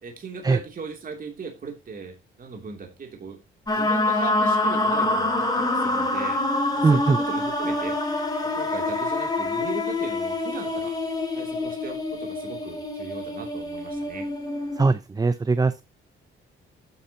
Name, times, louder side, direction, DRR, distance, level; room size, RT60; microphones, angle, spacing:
voice 1, 0.0-3.4 3.7-6.4 6.7-8.0 8.4-10.9 11.3-14.3, right 5 dB, 45° right, 2 dB, 3.2 m, -38 dB
sound 1, 3.7-14.9, left 2 dB, 20° left, 3.4 m, -26 dB
voice 2, 6.8-7.2 14.7-15.8, right 4 dB, 20° right, 14 dB, 0.6 m, -21 dB
12.0 x 8.7 x 3.0 m, 0.26 s
cardioid pair, 90°, 20 cm